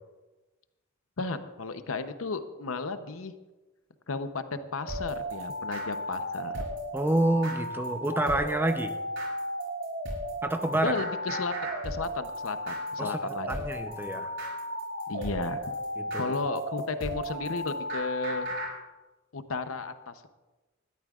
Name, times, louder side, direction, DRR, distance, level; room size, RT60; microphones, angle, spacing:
voice 1, 1.2-3.3 4.1-6.6 10.8-13.7 15.1-15.8 16.2-18.5 19.3-20.3, left 3 dB, 75° left, 10 dB, 0.8 m, -34 dB
sound 1, 4.8-18.7, equal, 65° right, 4.6 m, -34 dB
voice 2, 6.9-8.9 10.4-10.9 13.0-14.3 16.0-16.3, right 1 dB, 10° right, 7 dB, 0.7 m, -28 dB
20.5 x 13.0 x 2.4 m, 1.2 s
head